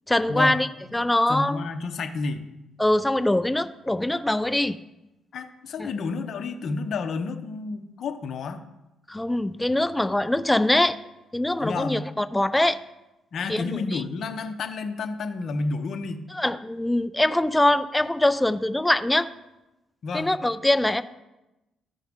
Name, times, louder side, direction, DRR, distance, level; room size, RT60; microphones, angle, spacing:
voice 1, 0.1-1.6 2.8-4.8 5.8-5.9 9.1-11.0 11.3-12.8 13.5-14.0 16.3-19.3 20.1-21.0, left 1 dB, 10° left, 12 dB, 0.4 m, -23 dB
voice 2, 1.3-2.4 5.3-8.6 11.6-12.0 13.3-16.3 20.0-20.4, left 4 dB, 60° left, 7 dB, 0.8 m, -30 dB
13.5 x 5.4 x 3.6 m, 0.96 s
cardioid pair, 90°, 0 cm